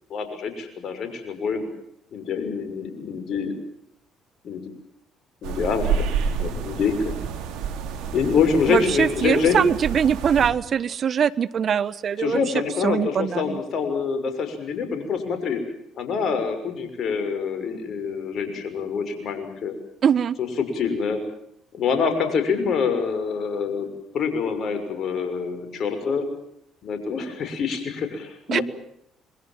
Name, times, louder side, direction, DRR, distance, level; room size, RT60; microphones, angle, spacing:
voice 1, 0.1-1.7 2.1-3.5 4.4-4.7 5.4-7.2 8.1-9.7 12.2-15.6 15.9-19.7 20.4-21.2 21.7-23.9 24.1-26.3 26.8-28.6, left 5 dB, 60° left, 9 dB, 6.2 m, -26 dB
sound 1, 5.4-10.5, right 6 dB, 75° right, 3.3 m, -29 dB
voice 2, 8.7-12.4 12.8-13.6 20.0-20.4 28.5-28.6, right 7 dB, 50° right, 18 dB, 1.2 m, -22 dB
27.0 x 22.5 x 7.6 m, 0.72 s
hypercardioid pair, 60°, 0 cm